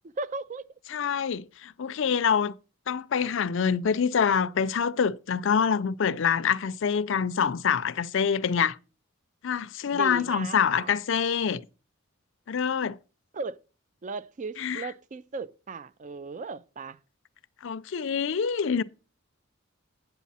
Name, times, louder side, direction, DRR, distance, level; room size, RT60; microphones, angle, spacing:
voice 1, 0.2-0.7 9.9-10.9 13.3-13.6 14.0-17.0, right 3 dB, 40° right, 0.4 m, -36 dB
voice 2, 0.9-2.5 2.9-8.8 9.4-11.6 12.5-13.0 14.6-14.9 17.6-18.8, left 7 dB, 65° left, 0.4 m, -26 dB
8.3 x 8.0 x 4.1 m
head